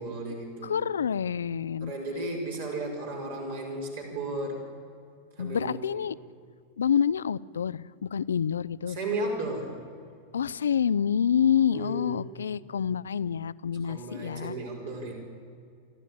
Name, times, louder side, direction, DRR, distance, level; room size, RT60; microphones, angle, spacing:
voice 1, 0.0-0.8 1.8-4.6 5.4-6.0 8.9-9.8 11.7-12.5 13.9-15.1, right 2 dB, 60° right, 0 dB, 5.1 m, -34 dB
voice 2, 0.6-1.9 5.4-6.2 6.8-9.0 10.3-14.5, left 8 dB, 70° left, 20 dB, 0.4 m, -27 dB
29.5 x 12.5 x 8.6 m, 2.4 s
figure-of-eight pair, 90°, 0 cm